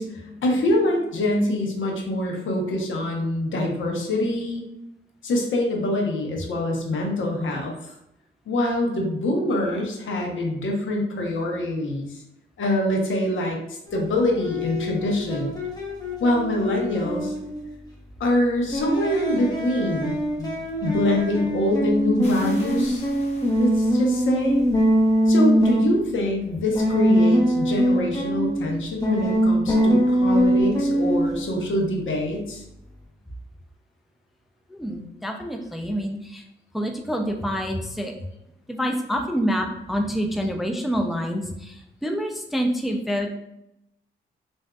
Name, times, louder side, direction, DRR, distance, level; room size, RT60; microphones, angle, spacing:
voice 1, 0.0-4.6 5.2-7.9 8.5-12.2 12.6-15.5 16.2-17.3 18.2-20.5 20.8-23.1 23.6-24.6 25.3-32.6, left 1 dB, 65° left, 0 dB, 0.9 m, -25 dB
sound 1, 13.9-17.7 18.7-25.9 26.7-28.8 29.0-31.5, equal, 15° left, 1.0 m, -23 dB
sound 2, 22.2-25.5, left 1 dB, 30° left, 1.4 m, -47 dB
voice 2, 34.7-36.4 36.7-38.1 38.7-43.3, equal, ahead, 3 dB, 0.4 m, -27 dB
3.5 x 2.6 x 2.3 m, 0.84 s
cardioid pair, 65°, 21 cm